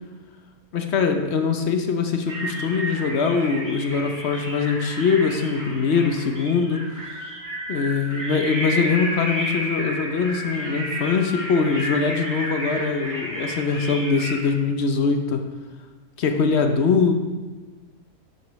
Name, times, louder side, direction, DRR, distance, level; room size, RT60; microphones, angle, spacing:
voice 1, 0.7-7.2 7.7-15.4 16.2-17.1, left 5 dB, 55° left, 5 dB, 0.8 m, -22 dB
sound 1, 2.3-14.5, equal, 10° right, 2.3 m, -32 dB
11.0 x 8.1 x 3.1 m, 1.3 s
omnidirectional pair, 1.7 m